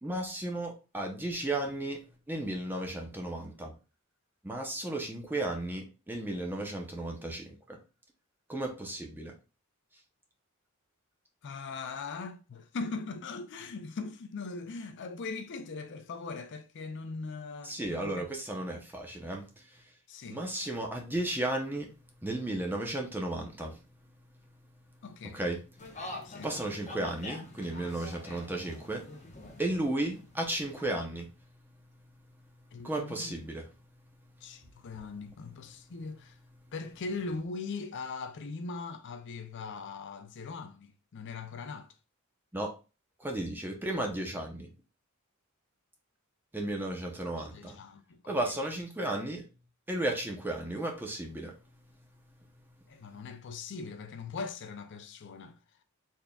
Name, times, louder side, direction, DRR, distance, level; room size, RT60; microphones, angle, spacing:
voice 1, 0.0-3.7 4.4-7.8 8.5-9.4 17.6-19.9 20.3-21.9 22.2-23.8 25.3-25.6 25.9-26.0 26.4-29.1 29.6-31.3 32.8-33.7 42.5-42.7 43.2-44.7 46.5-47.8 48.2-49.5 49.9-51.6, right 1 dB, 10° right, 0.7 m, -34 dB
voice 2, 11.4-18.3 20.1-20.4 25.0-25.4 26.2-26.5 32.7-33.3 34.4-36.4 36.7-41.9 47.2-48.2 52.9-55.6, left 4 dB, 55° left, 0.4 m, -40 dB
sound 1, 25.8-30.8, left 2 dB, 35° left, 0.9 m, -45 dB
4.1 x 3.4 x 2.3 m
head